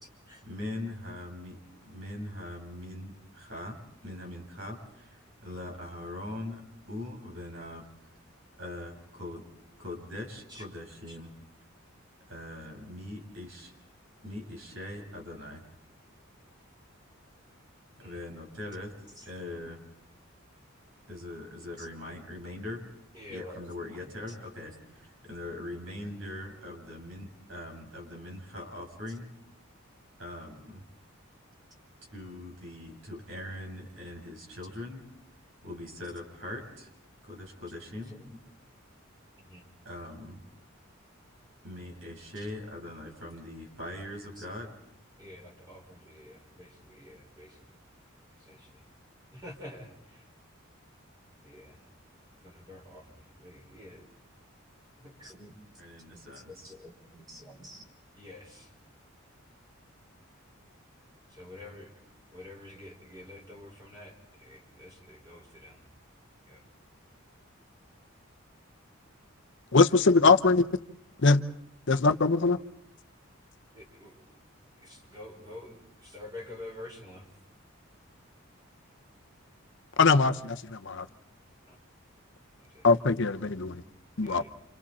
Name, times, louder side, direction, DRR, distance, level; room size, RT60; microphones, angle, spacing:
voice 1, 0.4-3.8 4.0-6.6 6.9-7.8 8.6-9.4 9.8-11.3 12.3-13.7 14.2-15.6 18.0-18.9 19.2-19.8 21.1-22.8 23.3-29.3 30.2-30.8 32.1-35.0 35.6-36.9 37.2-38.1 39.8-40.4 41.6-44.7 55.8-56.7, left 1 dB, 70° right, 1 dB, 6.9 m, -41 dB
voice 2, 23.1-23.7 24.0-24.4 29.1-29.2 38.1-38.3 39.4-39.7 42.4-42.5 44.4-44.5 45.2-47.8 48.4-48.8 49.3-50.3 51.4-51.8 52.4-54.1 55.0-55.5 56.3-57.8 58.1-58.7 61.3-61.9 62.3-65.8 66.5-66.6 70.7-70.8 71.9-72.0 73.7-74.4 74.8-77.3 81.6-81.8 82.6-82.9 83.6-84.5, left 1 dB, 20° right, 0 dB, 5.3 m, -48 dB
voice 3, 69.7-70.7 71.2-71.4 71.9-72.6 80.0-81.1 82.8-83.8 84.2-84.4, left 4 dB, 60° left, 9 dB, 0.8 m, -22 dB
30.0 x 27.5 x 4.3 m, 0.77 s
head